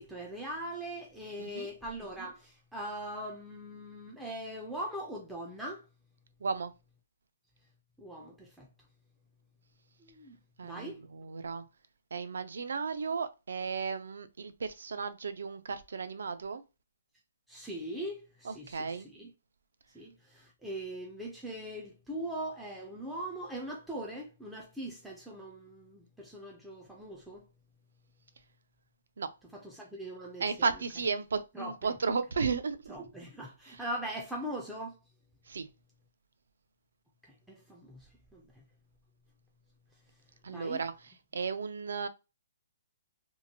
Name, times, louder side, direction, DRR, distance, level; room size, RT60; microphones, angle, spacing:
voice 1, 0.0-5.8 8.0-8.7 10.0-11.0 17.5-19.3 19.9-27.4 29.5-30.7 31.5-31.7 32.9-35.0 37.2-38.6 40.5-40.8, right 1 dB, ahead, 0.3 m, -41 dB
voice 2, 6.4-6.7 10.6-11.6 12.1-16.6 18.4-19.1 29.2-29.3 30.4-32.9 33.7-33.8 35.5-35.7 40.4-40.9 41.3-42.1, right 5 dB, 70° right, 0.4 m, -34 dB
2.8 x 2.5 x 2.6 m
hypercardioid pair, 175°, 0 cm